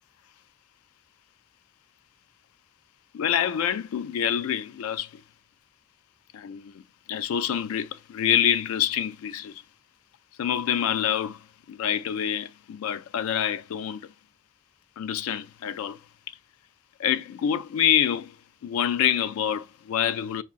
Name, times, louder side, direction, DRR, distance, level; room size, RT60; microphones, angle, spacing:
voice 1, 3.1-5.2 6.3-9.6 10.4-14.1 15.0-16.0 16.3-16.4 17.0-18.4 18.6-20.4, left 9 dB, 85° left, 0.3 m, -27 dB
4.4 x 2.8 x 2.4 m
head